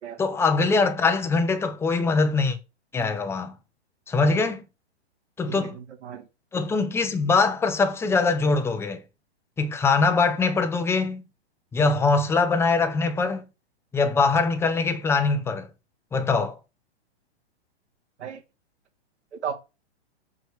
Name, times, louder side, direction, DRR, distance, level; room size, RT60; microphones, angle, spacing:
voice 1, 0.2-2.6 2.9-3.6 4.1-4.6 5.4-5.8 6.5-9.0 9.6-11.2 11.7-13.4 13.9-15.7 16.1-16.6, left 4 dB, 5° left, 0.7 m, -22 dB
voice 2, 5.5-6.3 18.2-18.4 19.3-19.5, right 8 dB, 85° right, 2.4 m, -35 dB
6.2 x 4.8 x 4.6 m
hypercardioid pair, 140°, 34 cm